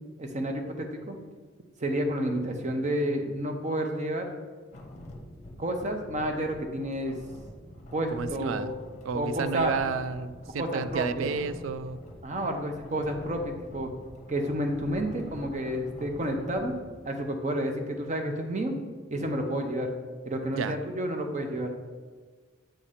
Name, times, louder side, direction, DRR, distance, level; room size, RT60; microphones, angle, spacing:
voice 1, 0.2-1.2 1.8-4.3 5.6-7.2 7.9-8.7 9.1-9.8 10.6-11.3 12.2-13.9 14.3-16.7 17.0-18.7 19.1-19.9 20.2-21.7, right 1 dB, 40° right, 4 dB, 0.7 m, -30 dB
sound 1, 4.7-16.9, left 1 dB, 35° left, 0.7 m, -46 dB
voice 2, 8.1-8.7 9.0-12.0 20.5-20.7, right 5 dB, 80° right, 13 dB, 0.3 m, -31 dB
7.6 x 2.8 x 4.9 m, 1.4 s
head